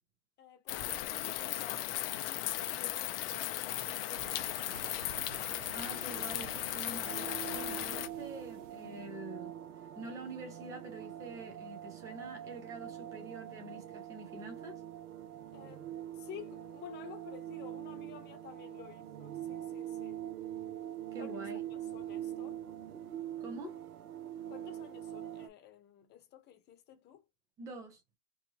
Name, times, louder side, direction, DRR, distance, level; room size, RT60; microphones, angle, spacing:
voice 1, 0.4-5.1 15.5-15.9 16.1-20.2 21.2-21.4 21.7-22.6 24.5-27.2, left 9 dB, 20° left, 1.0 m, -52 dB
sound 1, 0.7-8.1, left 14 dB, 40° left, 0.6 m, -37 dB
sound 2, 4.1-9.1, right 9 dB, 50° right, 0.7 m, -51 dB
voice 2, 5.7-9.5 10.0-14.8 21.1-21.6 23.4-23.8 27.6-28.0, right 2 dB, 10° right, 0.3 m, -46 dB
sound 3, 7.0-25.5, right 11 dB, 70° right, 1.2 m, -43 dB
4.6 x 2.5 x 2.9 m
hypercardioid pair, 140°, 46 cm